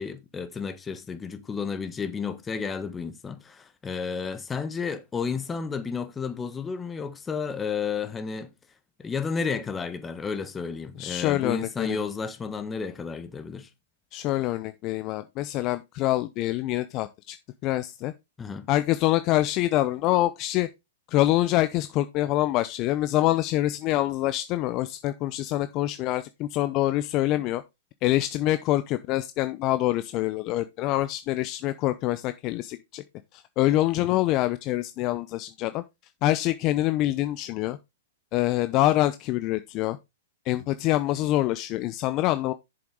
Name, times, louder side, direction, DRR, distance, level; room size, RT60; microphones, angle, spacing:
voice 1, 0.0-8.5 9.0-13.7 18.4-18.7 34.0-34.2, left 5 dB, 15° left, 1.2 m, -32 dB
voice 2, 11.0-12.0 14.1-17.4 17.6-18.1 18.7-20.7 21.1-27.6 28.0-33.0 33.3-35.8 36.2-37.8 38.3-40.0 40.5-42.5, left 15 dB, 35° left, 0.6 m, -25 dB
7.9 x 7.1 x 3.8 m
hypercardioid pair, 120°, 0 cm